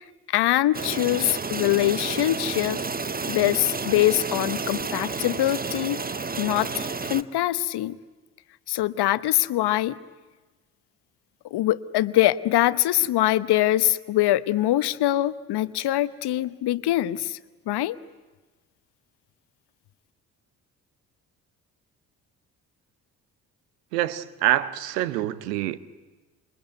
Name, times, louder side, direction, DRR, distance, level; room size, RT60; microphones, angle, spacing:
voice 1, 0.3-2.8 3.3-6.0 6.4-8.0 8.7-10.0 11.5-17.4 17.7-18.0, left 14 dB, 55° left, 1.0 m, -23 dB
sound 1, 0.7-7.2, right 4 dB, 20° right, 1.0 m, -31 dB
voice 2, 23.9-25.8, right 13 dB, 80° right, 0.9 m, -25 dB
27.0 x 22.5 x 9.4 m
figure-of-eight pair, 40°, 47 cm